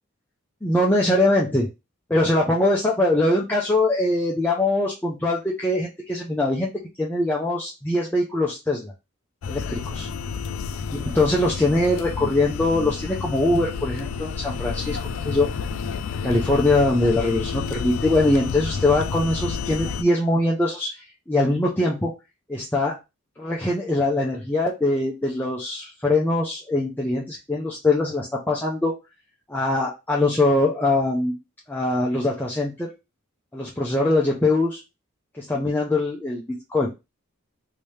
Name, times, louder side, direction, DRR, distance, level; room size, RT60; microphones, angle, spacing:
voice 1, 0.6-1.7 2.1-6.7 7.0-8.9 9.5-10.1 10.9-15.0 15.2-15.5 16.2-22.1 22.5-23.0 23.4-28.9 29.5-31.4 31.7-32.9 33.5-34.8 35.4-36.9, left 2 dB, 10° left, -3 dB, 0.5 m, -22 dB
sound 1, 9.4-20.0, left 5 dB, 65° left, 0.3 m, -30 dB
3.2 x 2.7 x 3.2 m, 0.25 s
head